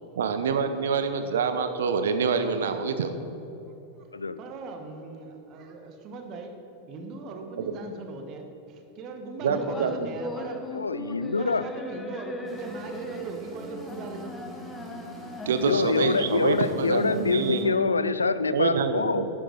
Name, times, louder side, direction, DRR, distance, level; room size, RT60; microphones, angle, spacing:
voice 1, 0.2-3.1 9.4-9.9 15.5-17.7 18.5-19.3, right 5 dB, 60° right, 9 dB, 0.7 m, -26 dB
voice 2, 4.0-10.6 11.4-14.4, right 3 dB, 35° right, 4 dB, 1.3 m, -40 dB
sound 1, 9.5-18.5, left 1 dB, 15° left, 1.0 m, -39 dB
voice 3, 10.7-11.6 15.6-19.3, left 4 dB, 75° left, 14 dB, 0.4 m, -25 dB
sound 2, 12.4-17.6, right 2 dB, 5° right, 2.1 m, -44 dB
11.5 x 9.6 x 4.0 m, 3.0 s
figure-of-eight pair, 90°, 0 cm